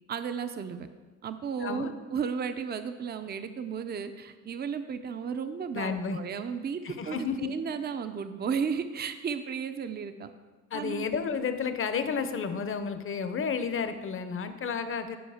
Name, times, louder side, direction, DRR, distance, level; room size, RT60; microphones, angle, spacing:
voice 1, 0.1-0.9 1.2-10.3 10.7-11.1, right 6 dB, 35° right, 9 dB, 0.6 m, -34 dB
voice 2, 5.7-6.2 6.8-7.5 10.7-15.2, left 6 dB, 45° left, 9 dB, 0.8 m, -31 dB
11.0 x 5.3 x 5.0 m, 1.4 s
cardioid pair, 90°, 30 cm